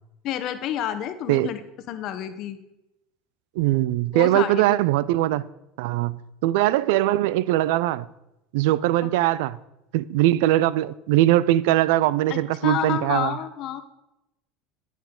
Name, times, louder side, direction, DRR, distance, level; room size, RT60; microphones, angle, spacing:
voice 1, 0.2-1.6 1.9-2.6 4.1-4.8 9.0-9.1 12.3-13.8, left 10 dB, 55° left, 0.9 m, -29 dB
voice 2, 3.6-5.5 5.8-8.1 8.5-9.6 9.9-13.4, right 15 dB, 80° right, 0.4 m, -21 dB
10.0 x 8.4 x 3.8 m
supercardioid pair, 125°, 0 cm